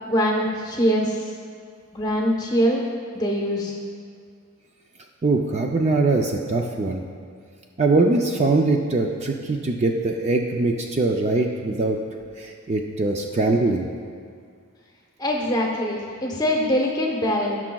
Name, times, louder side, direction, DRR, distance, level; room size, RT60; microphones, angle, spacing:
voice 1, 0.0-1.1 1.9-2.8 3.1-3.7 15.2-17.6, equal, 20° left, -1 dB, 1.0 m, -23 dB
voice 2, 5.2-7.0 7.8-12.0 12.4-13.9, right 3 dB, 30° right, 2 dB, 0.4 m, -22 dB
17.5 x 6.0 x 2.3 m, 2.2 s
head